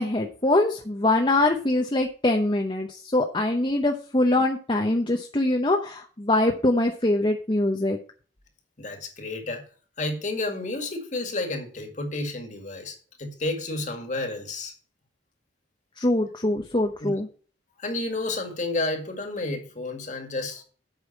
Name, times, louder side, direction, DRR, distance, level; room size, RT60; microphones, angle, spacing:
voice 1, 0.0-8.0 16.0-17.3, left 2 dB, 25° left, 3 dB, 0.8 m, -23 dB
voice 2, 8.8-9.6 10.0-14.7 17.0-17.1 17.8-20.6, left 2 dB, 45° left, 5 dB, 2.0 m, -31 dB
8.3 x 5.6 x 7.2 m, 0.41 s
head